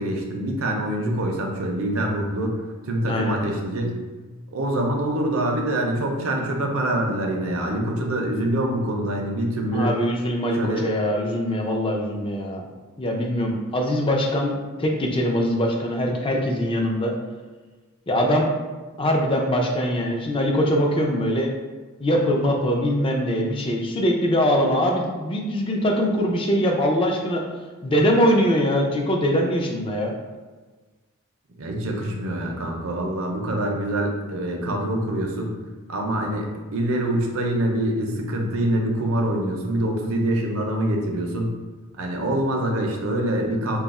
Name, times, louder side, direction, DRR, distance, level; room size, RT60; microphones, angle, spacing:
voice 1, 0.0-4.0 4.5-9.9 10.5-10.9 31.6-35.5 35.9-41.5 42.0-43.8, right 1 dB, 70° right, 1 dB, 0.6 m, -25 dB
voice 2, 3.0-3.4 9.7-12.6 13.0-17.2 18.1-18.5 19.0-21.5 22.0-27.4 27.8-30.1, equal, 25° left, 1 dB, 0.4 m, -22 dB
2.7 x 2.3 x 4.0 m, 1.3 s
head